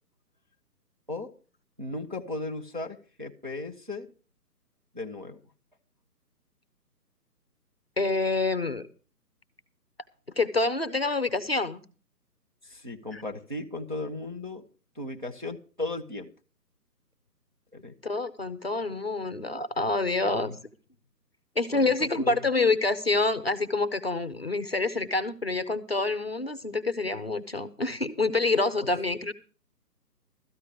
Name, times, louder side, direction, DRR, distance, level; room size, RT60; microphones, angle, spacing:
voice 1, 1.8-4.1 4.9-5.4 12.6-14.6 15.0-16.3 17.7-17.9 20.2-20.6 21.7-22.4, left 2 dB, 30° right, 1 dB, 0.6 m, -36 dB
voice 2, 8.0-8.8 10.4-11.8 13.1-13.2 18.0-20.5 21.6-29.3, left 3 dB, 40° left, 13 dB, 0.6 m, -27 dB
13.5 x 9.6 x 4.9 m, 0.39 s
hypercardioid pair, 175°, 48 cm